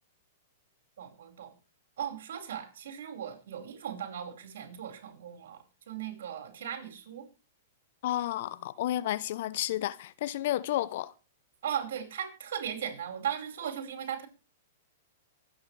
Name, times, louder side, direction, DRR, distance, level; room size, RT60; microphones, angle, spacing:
voice 1, 1.0-1.5 2.0-7.3 11.6-14.3, right 9 dB, 70° right, 5.1 m, -37 dB
voice 2, 8.0-11.1, left 13 dB, 60° left, 0.8 m, -31 dB
24.0 x 9.5 x 3.4 m
hypercardioid pair, 115°, 0 cm